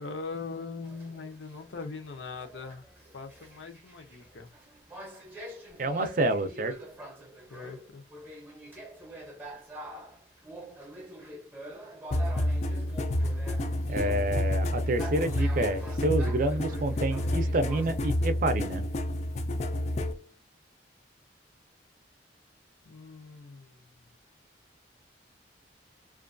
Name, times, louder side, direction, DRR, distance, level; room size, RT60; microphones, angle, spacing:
voice 1, 0.0-4.5 7.5-8.0 22.8-24.1, left 4 dB, 80° left, 0.6 m, -41 dB
sound 1, 0.8-17.9, right 1 dB, 10° right, 0.7 m, -46 dB
voice 2, 5.8-6.8 13.9-18.8, right 2 dB, 45° right, 0.5 m, -28 dB
sound 2, 12.1-20.2, left 1 dB, 35° left, 0.3 m, -29 dB
2.5 x 2.3 x 2.5 m
head